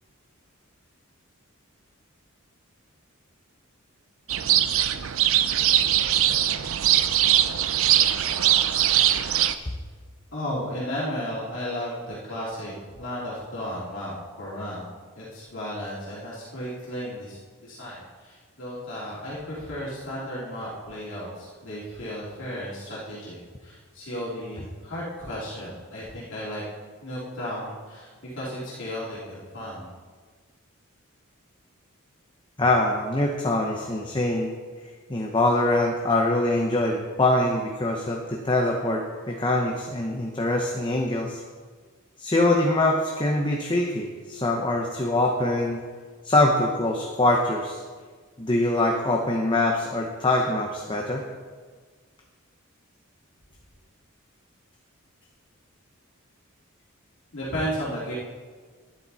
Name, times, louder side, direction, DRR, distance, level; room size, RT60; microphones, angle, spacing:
sound 1, 4.3-9.5, right 11 dB, 65° right, 0.5 m, -21 dB
voice 1, 10.3-14.9 15.2-26.6 27.0-29.9 57.3-58.1, equal, 60° left, -8 dB, 3.0 m, -34 dB
voice 2, 32.6-34.5 35.1-41.4 42.2-45.8 46.2-47.8 48.4-51.2, left 2 dB, 20° left, 1 dB, 0.9 m, -23 dB
11.5 x 10.5 x 4.1 m, 1.5 s
head